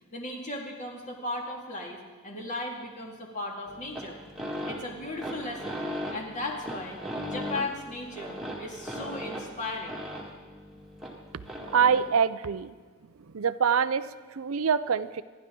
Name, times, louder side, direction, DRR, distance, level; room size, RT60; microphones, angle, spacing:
voice 1, 0.1-4.2 4.7-10.0, left 2 dB, 35° left, 0 dB, 2.2 m, -36 dB
sound 1, 3.7-12.1, equal, ahead, 1.9 m, -38 dB
voice 2, 11.7-12.7 13.3-14.0 14.4-15.2, right 7 dB, 70° right, 14 dB, 0.5 m, -24 dB
27.5 x 11.0 x 3.8 m, 1.5 s
head